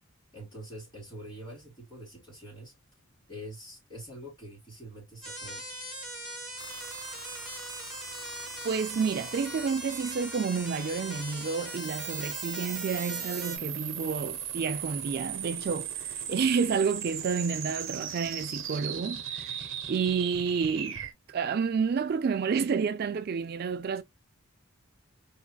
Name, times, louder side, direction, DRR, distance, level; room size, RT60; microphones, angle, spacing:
voice 1, 0.3-2.7 3.3-5.7, equal, 20° left, 3.5 m, -45 dB
sound 1, 5.2-13.6, right 1 dB, ahead, 2.7 m, -40 dB
sound 2, 6.6-21.1, right 8 dB, 65° right, 1.0 m, -39 dB
voice 2, 8.6-21.0 21.3-24.0, right 5 dB, 45° right, 0.3 m, -30 dB
4.6 x 3.6 x 2.3 m
head